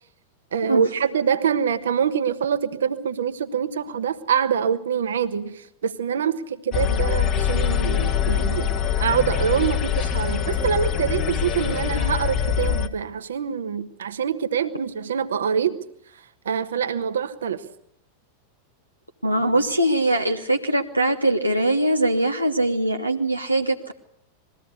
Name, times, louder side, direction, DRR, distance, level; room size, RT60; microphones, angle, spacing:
voice 1, 0.5-8.7 9.0-15.8 16.4-17.6, right 7 dB, 65° right, 10 dB, 1.2 m, -25 dB
sound 1, 6.7-12.9, left 8 dB, 35° left, 1.2 m, -23 dB
voice 2, 19.2-23.9, right 1 dB, 90° right, 3 dB, 1.0 m, -22 dB
21.5 x 16.0 x 8.1 m, 0.73 s
figure-of-eight pair, 90°, 0 cm